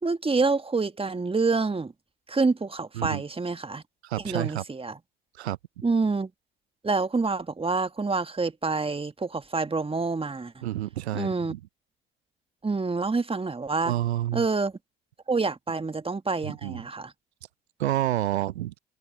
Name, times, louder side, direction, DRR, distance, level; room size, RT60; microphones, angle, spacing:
voice 1, 0.0-1.9 2.3-3.8 4.2-5.0 5.8-6.3 6.8-10.6 11.1-11.5 12.6-13.9 14.3-14.7 15.3-17.1, right 4 dB, 15° right, 1.7 m, -27 dB
voice 2, 4.0-4.6 5.3-5.6 10.6-11.6 13.8-14.4 16.4-16.8 17.8-18.7, right 14 dB, 85° right, 0.6 m, -29 dB
open air
hypercardioid pair, 55°, 32 cm